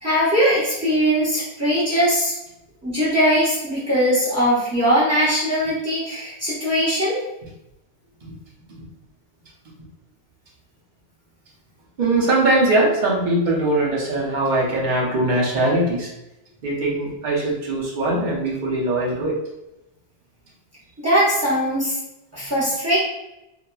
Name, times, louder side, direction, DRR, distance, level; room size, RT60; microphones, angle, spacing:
voice 1, 0.0-2.3 2.8-7.2 21.0-22.0 22.3-23.0, equal, 15° right, -8 dB, 0.8 m, -20 dB
voice 2, 12.0-16.1 16.6-19.4, right 2 dB, 50° right, -4 dB, 0.7 m, -21 dB
2.8 x 2.3 x 2.2 m, 0.91 s
omnidirectional pair, 1.1 m